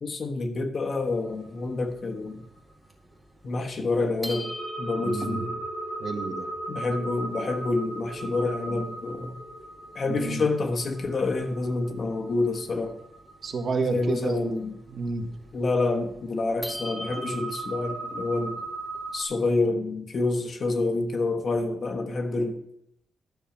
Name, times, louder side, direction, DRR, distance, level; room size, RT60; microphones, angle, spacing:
voice 1, 0.0-2.5 3.4-4.5 4.8-5.6 6.7-9.4 9.9-13.0 13.8-14.8 15.5-18.6 19.1-22.5, left 3 dB, 45° left, 4 dB, 1.3 m, -28 dB
sound 1, 1.0-3.3 3.8-3.9 4.2-19.2, right 2 dB, 15° right, 2.0 m, -38 dB
sound 2, 4.2-12.5, equal, 35° right, 5.4 m, -44 dB
voice 2, 5.0-5.4 6.0-6.5 8.2-8.9 10.1-10.5 13.4-14.6 14.9-15.3, right 4 dB, 55° right, 5 dB, 1.5 m, -31 dB
12.5 x 6.3 x 7.3 m, 0.76 s
wide cardioid pair, 145°, 0 cm